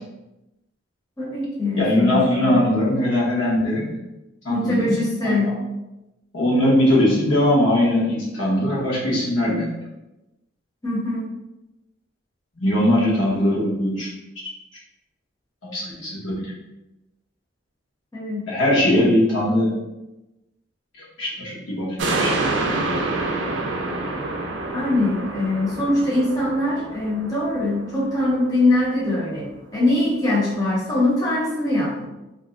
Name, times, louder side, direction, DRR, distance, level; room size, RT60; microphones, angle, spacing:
voice 1, 1.2-2.6 4.5-5.5 10.8-11.3 18.1-18.5 24.7-29.4 29.7-32.1, left 2 dB, 20° left, -7 dB, 0.7 m, -22 dB
voice 2, 1.8-4.0 4.4-5.4 6.3-9.7 12.6-14.1 14.4-14.5 15.6-16.5 18.5-19.8 20.9-21.9 22.2-22.4, left 1 dB, 70° left, -5 dB, 1.0 m, -20 dB
sound 1, 22.0-28.6 29.1-29.2, right 2 dB, 65° right, 0.4 m, -27 dB
2.6 x 2.1 x 3.5 m, 0.98 s
head